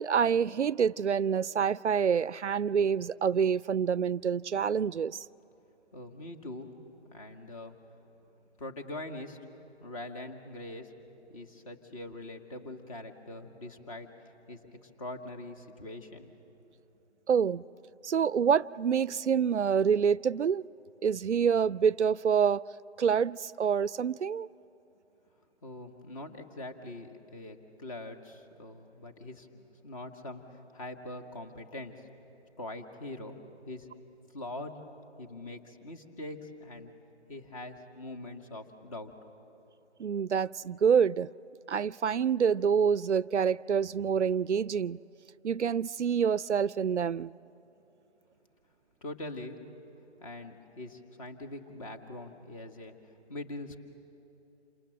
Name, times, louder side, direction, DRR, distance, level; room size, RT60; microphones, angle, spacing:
voice 1, 0.0-5.2 17.3-17.6 18.0-20.6 21.0-22.6 23.0-24.5 40.0-41.3 41.7-45.0 45.4-47.3, right 7 dB, 85° right, 0.5 m, -27 dB
voice 2, 5.9-6.7 7.1-7.8 8.6-9.4 9.8-10.9 11.3-14.1 14.5-16.4 25.6-32.0 32.6-33.4 33.7-33.9 34.3-34.8 35.2-36.9 37.3-39.1 49.0-49.6 50.2-52.9 53.3-53.8, left 2 dB, 30° left, 1.9 m, -43 dB
28.0 x 27.5 x 7.7 m
figure-of-eight pair, 150°, 34 cm